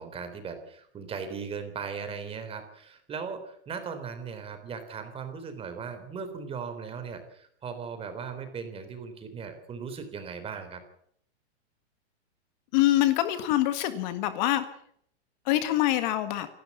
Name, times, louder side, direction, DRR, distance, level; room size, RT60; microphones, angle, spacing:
voice 1, 0.0-10.8, right 6 dB, 15° right, 8 dB, 3.6 m, -38 dB
voice 2, 12.7-14.6 15.5-16.5, left 14 dB, 40° left, 10 dB, 1.8 m, -25 dB
28.0 x 12.0 x 8.4 m, 0.67 s
hypercardioid pair, 150°, 34 cm